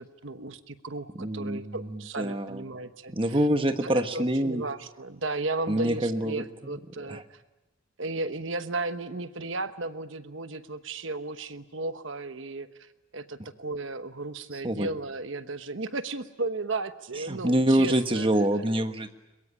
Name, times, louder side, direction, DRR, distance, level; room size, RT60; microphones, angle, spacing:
voice 1, 0.0-3.4 3.8-7.4 8.0-18.3, right 3 dB, 65° right, 11 dB, 1.1 m, -35 dB
voice 2, 1.1-2.6 3.1-4.6 5.7-6.8 7.1-7.2 14.6-14.9 17.3-19.1, right 1 dB, 25° right, 7 dB, 1.4 m, -26 dB
22.5 x 22.5 x 10.0 m, 1.0 s
head